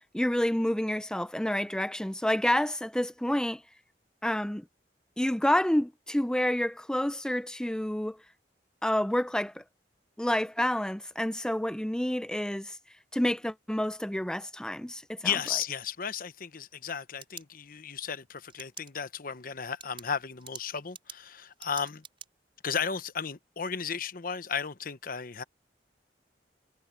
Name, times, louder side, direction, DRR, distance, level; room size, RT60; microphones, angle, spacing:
voice 1, 0.1-3.6 4.2-4.6 5.2-8.2 8.8-9.6 10.2-12.8 13.1-15.3, left 1 dB, 5° left, 0.4 m, -29 dB
voice 2, 15.2-22.0 22.6-25.4, left 7 dB, 55° left, 0.9 m, -34 dB
sound 1, 15.4-16.3 17.2-17.5 18.5-18.9 19.3-19.4 19.8-22.3, right 7 dB, 30° right, 4.8 m, -47 dB
head